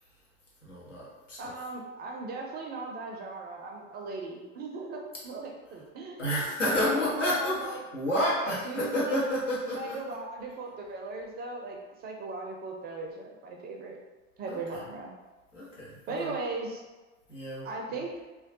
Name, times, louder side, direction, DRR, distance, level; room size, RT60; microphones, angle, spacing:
voice 1, 0.6-1.6 6.2-10.0 14.5-14.8 15.5-16.4 17.3-18.0, equal, 90° left, -7 dB, 0.8 m, -30 dB
voice 2, 1.4-6.2 6.7-7.8 8.4-9.2 9.7-14.0 14.4-15.1 16.1-16.8 17.6-18.1, right 3 dB, 30° right, 0 dB, 0.4 m, -38 dB
2.2 x 2.2 x 2.6 m, 1.2 s
figure-of-eight pair, 70°, 36 cm